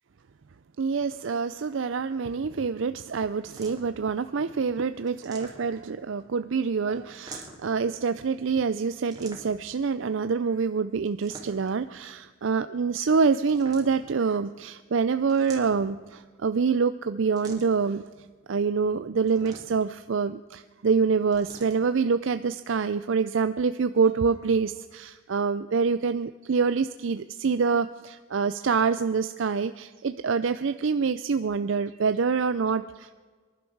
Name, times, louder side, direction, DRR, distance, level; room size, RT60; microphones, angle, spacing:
voice 1, 0.8-18.1 18.5-33.1, right 5 dB, 65° right, 11 dB, 0.5 m, -26 dB
sound 1, 3.4-4.0 5.1-6.0 7.1-7.8 9.1-9.7 11.0-11.8 13.4-14.2 15.3-16.1 17.4-17.9 19.2-20.0 21.3-21.8, right 2 dB, 20° right, 2.8 m, -45 dB
25.0 x 11.5 x 4.6 m, 1.5 s
head